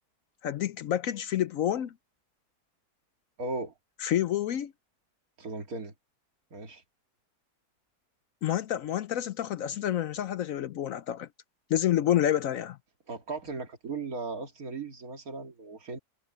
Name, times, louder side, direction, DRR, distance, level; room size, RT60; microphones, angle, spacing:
voice 1, 0.4-1.9 4.0-4.7 8.4-11.3 11.7-12.8, left 11 dB, 65° left, 0.9 m, -28 dB
voice 2, 3.4-3.7 5.4-5.9 6.5-6.8 13.1-16.0, right 3 dB, 65° right, 2.6 m, -37 dB
omnidirectional pair, 1.7 m